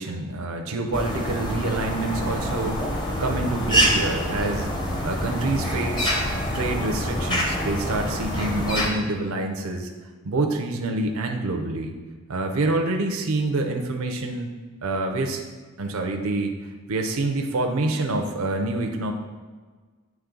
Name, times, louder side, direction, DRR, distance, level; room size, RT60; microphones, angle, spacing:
voice 1, 0.0-4.7 5.0-6.2 6.5-9.9 10.2-11.9 12.3-14.5 14.8-15.4 15.8-16.5 16.9-19.1, right 2 dB, 70° right, 3 dB, 0.5 m, -27 dB
sound 1, 0.9-8.9, equal, 20° left, 0.8 m, -26 dB
8.3 x 3.1 x 3.7 m, 1.4 s
head